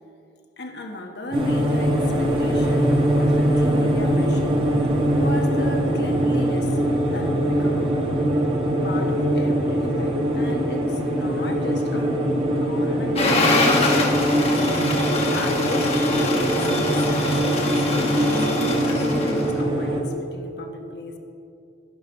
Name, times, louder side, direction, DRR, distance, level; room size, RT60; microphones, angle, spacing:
voice 1, 0.6-4.7 5.1-6.8 7.1-7.9 8.8-14.2 15.3-21.2, left 1 dB, 65° left, 3 dB, 1.2 m, -35 dB
sound 1, 1.3-20.0, right 1 dB, 30° right, 1.3 m, -22 dB
sound 2, 13.2-19.6, left 2 dB, 35° left, 1.2 m, -24 dB
12.0 x 11.0 x 4.6 m, 2.6 s
head